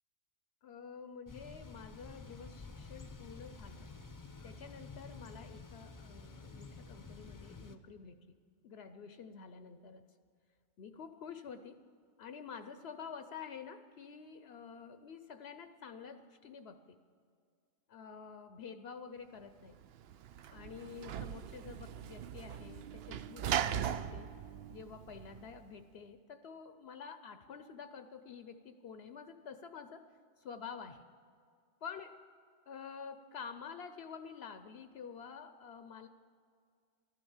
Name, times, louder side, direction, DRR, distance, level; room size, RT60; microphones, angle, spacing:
voice 1, 0.6-3.9 4.4-8.3 8.6-10.0 10.8-11.8 12.2-16.8 17.9-19.8 20.5-24.3 24.7-30.1 30.4-31.0 31.8-32.2 32.7-36.1, left 6 dB, 70° left, 9 dB, 0.9 m, -49 dB
Thunder / Bicycle, 1.3-7.8, left 3 dB, 20° left, 0.6 m, -50 dB
Sliding door / Slam, 19.7-25.6, right 9 dB, 70° right, 0.8 m, -39 dB
15.0 x 13.0 x 7.1 m, 2.2 s
omnidirectional pair, 1.2 m